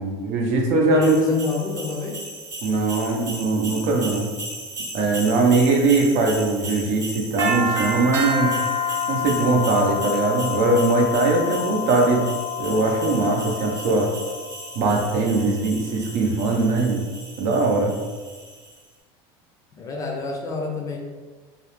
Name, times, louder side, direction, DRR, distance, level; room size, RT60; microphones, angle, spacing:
voice 1, 0.0-1.2 2.6-4.3 4.9-8.5 9.1-12.2 12.6-14.1 14.7-17.0 17.4-17.9, right 3 dB, 60° right, 1 dB, 0.6 m, -21 dB
voice 2, 0.9-2.2 19.8-21.0, left 4 dB, 25° left, 0 dB, 0.4 m, -28 dB
sound 1, 1.0-18.7, left 2 dB, 25° right, 0.6 m, -30 dB
2.3 x 2.0 x 2.9 m, 1.4 s
supercardioid pair, 120°, 13 cm